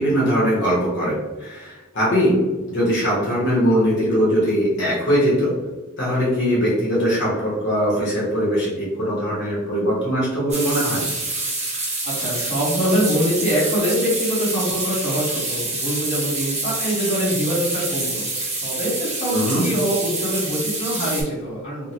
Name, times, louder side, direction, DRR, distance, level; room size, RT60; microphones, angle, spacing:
voice 1, 0.0-5.6 6.0-11.0 19.3-19.6, equal, 55° left, -7 dB, 1.2 m, -21 dB
sound 1, 10.5-21.2, right 2 dB, 30° right, 1.0 m, -27 dB
voice 2, 12.0-21.9, equal, 35° left, -8 dB, 1.2 m, -24 dB
3.5 x 2.1 x 2.8 m, 1.2 s
head